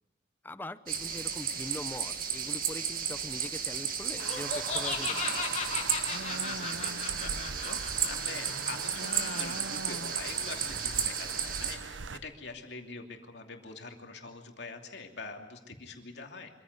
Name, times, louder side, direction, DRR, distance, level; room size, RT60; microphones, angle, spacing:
voice 1, 0.4-5.3, left 1 dB, 10° left, 13 dB, 0.7 m, -42 dB
sound 1, 0.9-11.8, right 7 dB, 50° right, 1.9 m, -34 dB
Laughter, 4.2-9.8, left 5 dB, 35° left, 2.0 m, -37 dB
sound 2, 4.2-12.2, right 4 dB, 85° right, 1.0 m, -41 dB
voice 2, 6.3-7.8 8.1-16.5, left 4 dB, 65° left, 3 dB, 2.8 m, -44 dB
25.5 x 15.0 x 9.5 m, 1.1 s
head